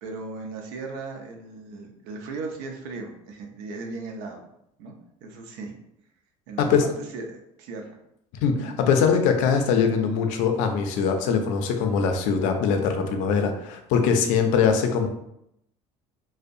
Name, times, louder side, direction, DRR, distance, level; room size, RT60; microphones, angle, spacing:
voice 1, 0.0-4.5 4.8-4.9 5.2-5.8 6.5-6.8 7.1-7.9 8.6-8.7, right 3 dB, 90° right, 2 dB, 0.5 m, -37 dB
voice 2, 8.4-15.1, left 6 dB, 70° left, 6 dB, 0.4 m, -22 dB
2.6 x 2.1 x 2.5 m, 0.78 s
cardioid pair, 165°, 13 cm